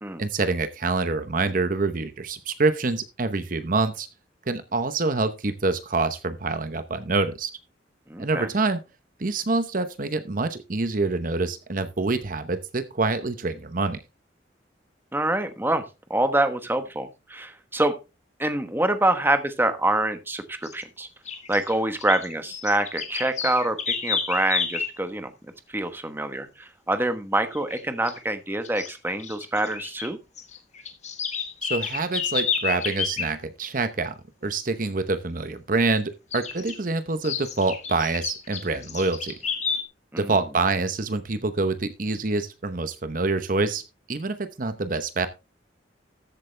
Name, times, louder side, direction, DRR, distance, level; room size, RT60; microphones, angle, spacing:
voice 1, 0.2-4.1 4.5-7.5 8.2-8.8 9.2-14.0 31.6-34.1 34.4-39.3 40.2-43.8 44.1-45.3, right 3 dB, 50° right, 11 dB, 0.9 m, -26 dB
voice 2, 8.1-8.5 15.1-15.8 16.1-17.9 18.4-21.1 21.5-25.3 25.7-30.2 40.1-40.3, right 1 dB, 10° right, 9 dB, 1.1 m, -26 dB
sound 1, 20.6-20.8 21.3-25.0 27.5-27.8 28.1-28.2 28.6-30.1 30.4-33.3 36.3-36.8 37.2-39.8, left 6 dB, 40° left, 1.6 m, -30 dB
13.5 x 8.2 x 3.3 m, 0.28 s
head